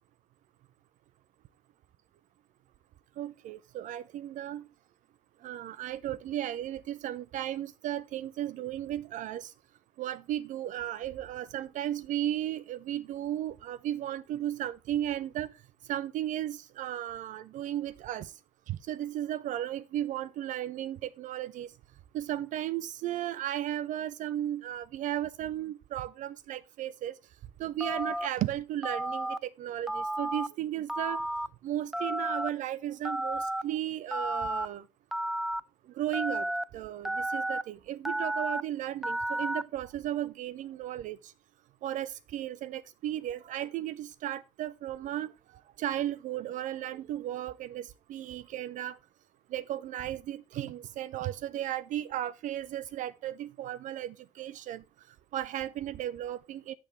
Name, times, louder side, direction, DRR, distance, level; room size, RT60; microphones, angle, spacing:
voice 1, 3.2-4.6 5.4-9.5 10.0-15.5 15.9-18.3 18.7-21.7 22.1-27.2 27.6-31.2 31.6-34.8 36.0-36.5 36.7-41.3 41.8-45.3 45.8-49.0 49.5-54.8 55.3-56.7, right 12 dB, 55° right, 0.5 m, -35 dB
Telephone, 27.8-28.3 28.8-29.4 29.9-30.5 30.9-31.5 31.9-32.5 33.0-33.6 34.1-34.7 35.1-35.6 36.1-36.6 37.0-37.6 38.0-38.6 39.0-39.6, right 1 dB, ahead, 0.6 m, -32 dB
10.0 x 6.0 x 4.4 m
figure-of-eight pair, 45°, 16 cm